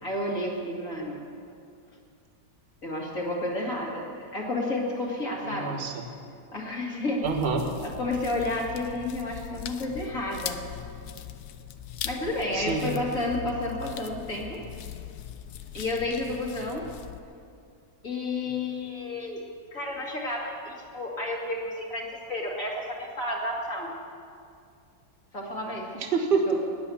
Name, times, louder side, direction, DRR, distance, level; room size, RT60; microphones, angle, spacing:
voice 1, 0.0-1.2 2.8-5.8 6.5-7.2 7.8-10.6 12.0-14.6 15.7-16.8 18.0-19.4 19.7-23.9 25.3-25.8 26.5-26.6, left 2 dB, 55° left, -2 dB, 2.5 m, -31 dB
voice 2, 5.4-6.0 7.2-7.7 12.5-13.0 25.9-26.6, right 4 dB, 35° right, 4 dB, 1.3 m, -27 dB
sound 1, 7.2-17.2, left 10 dB, 75° left, 1.2 m, -40 dB
19.5 x 8.1 x 7.0 m, 2.3 s
omnidirectional pair, 1.7 m